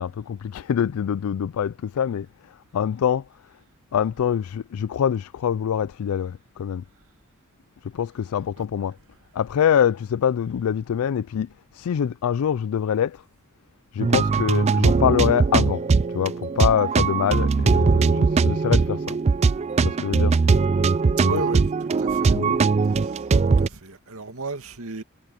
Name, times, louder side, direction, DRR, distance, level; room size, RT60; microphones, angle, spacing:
voice 1, 0.0-2.3 2.7-3.2 3.9-6.8 7.9-8.9 9.3-11.5 11.7-13.2 13.9-15.8 16.1-19.2 19.8-20.3 21.2-21.4 22.3-22.6, left 8 dB, 85° left, 0.4 m, -24 dB
sound 1, 14.0-23.7, right 4 dB, 30° right, 0.3 m, -20 dB
voice 2, 21.2-22.4 22.8-23.3 23.6-25.0, right 2 dB, 80° right, 2.2 m, -34 dB
head